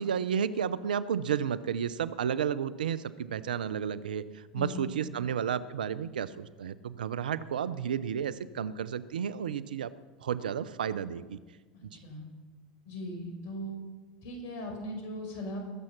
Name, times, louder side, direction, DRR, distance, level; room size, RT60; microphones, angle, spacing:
voice 1, 0.0-9.9 10.2-11.4 11.8-11.9, right 8 dB, 85° right, 16 dB, 0.6 m, -32 dB
voice 2, 4.5-4.9 11.7-12.3 12.9-13.7 14.2-15.6, left 1 dB, 60° left, 2 dB, 5.5 m, -39 dB
20.5 x 7.7 x 6.0 m, 1.3 s
hypercardioid pair, 85°, 5 cm